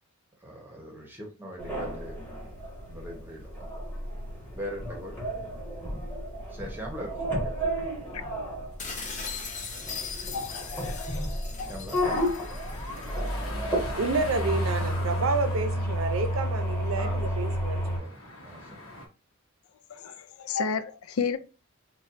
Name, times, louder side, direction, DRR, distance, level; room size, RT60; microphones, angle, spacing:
voice 1, 0.4-2.2 2.9-3.7 4.5-5.2 6.5-7.9 11.5-12.0 17.0-17.5 18.0-18.1 18.4-18.9, equal, 10° right, 0.8 m, -41 dB
sound 1, 1.6-18.0, equal, 10° left, 1.3 m, -32 dB
sound 2, 8.8-13.5, left 5 dB, 35° left, 0.7 m, -39 dB
voice 2, 10.3-11.7 12.1-12.6 19.9-21.4, left 5 dB, 90° left, 0.4 m, -33 dB
sound 3, 12.0-19.1, left 1 dB, 70° left, 1.0 m, -42 dB
voice 3, 13.9-18.1, right 3 dB, 70° right, 0.6 m, -29 dB
4.2 x 2.3 x 2.5 m
head